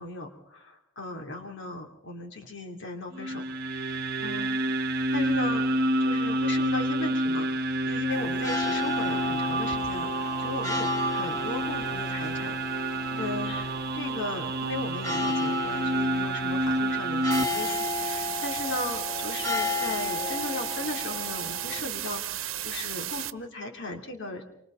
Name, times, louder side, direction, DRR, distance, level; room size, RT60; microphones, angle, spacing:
voice 1, 0.0-4.6 5.1-5.6 6.0-7.5 7.9-12.9 13.2-24.4, left 2 dB, 65° left, 2 dB, 3.2 m, -37 dB
sound 1, 3.1-17.4, right 1 dB, 50° right, 1.1 m, -28 dB
sound 2, 8.1-21.8, left 4 dB, 15° left, 3.9 m, -34 dB
sound 3, 17.3-23.3, right 13 dB, 85° right, 0.9 m, -34 dB
28.0 x 25.5 x 4.0 m, 0.80 s
head